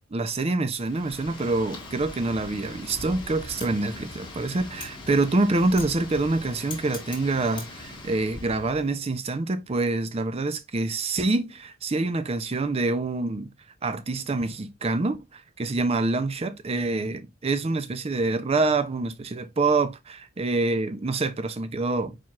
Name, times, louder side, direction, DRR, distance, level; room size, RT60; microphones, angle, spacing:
voice 1, 0.1-13.5 13.8-22.2, right 3 dB, 30° right, 0.5 m, -26 dB
Wind, 0.7-8.9, left 2 dB, 25° left, 1.5 m, -40 dB
4.4 x 4.4 x 2.4 m
head